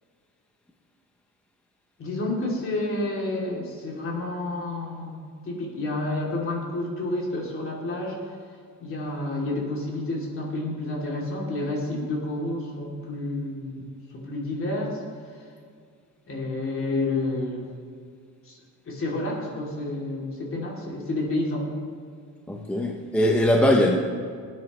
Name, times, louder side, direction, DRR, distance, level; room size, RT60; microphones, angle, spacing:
voice 1, 2.0-5.2 5.4-8.2 8.8-15.0 16.3-17.7 18.4-18.6 18.8-21.7, left 2 dB, 40° left, -3 dB, 2.8 m, -29 dB
voice 2, 22.5-24.0, left 1 dB, 5° left, 1 dB, 0.6 m, -21 dB
19.0 x 9.3 x 3.1 m, 2.1 s
cardioid pair, 175°, 33 cm